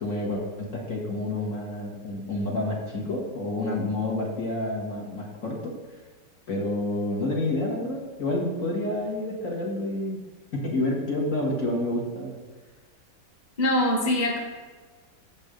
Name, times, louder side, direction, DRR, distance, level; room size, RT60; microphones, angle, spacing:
voice 1, 0.0-5.7 6.5-10.2 10.5-12.4, left 1 dB, 50° left, -3 dB, 2.0 m, -29 dB
voice 2, 13.6-14.4, left 1 dB, 25° left, -3 dB, 1.3 m, -23 dB
7.2 x 5.3 x 6.5 m, 1.4 s
omnidirectional pair, 1.9 m